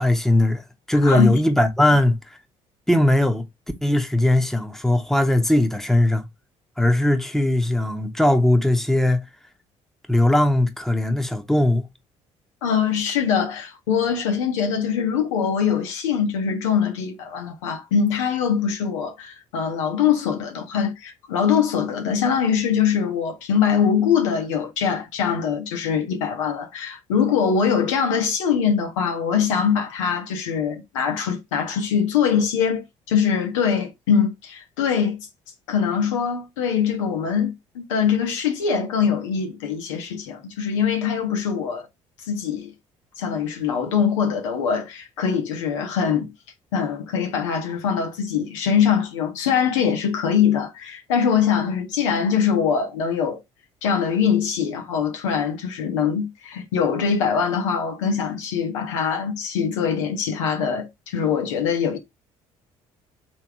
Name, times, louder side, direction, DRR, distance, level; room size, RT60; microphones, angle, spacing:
voice 1, 0.0-2.2 2.9-3.4 3.8-6.2 6.8-9.2 10.1-11.9, left 1 dB, ahead, 1.1 m, -19 dB
voice 2, 1.0-1.4 12.6-35.2 35.7-41.9 42.3-42.7 43.2-46.3 46.7-53.4 53.8-62.0, left 7 dB, 85° left, 1.0 m, -23 dB
3.4 x 3.1 x 4.7 m
hypercardioid pair, 55°, 15 cm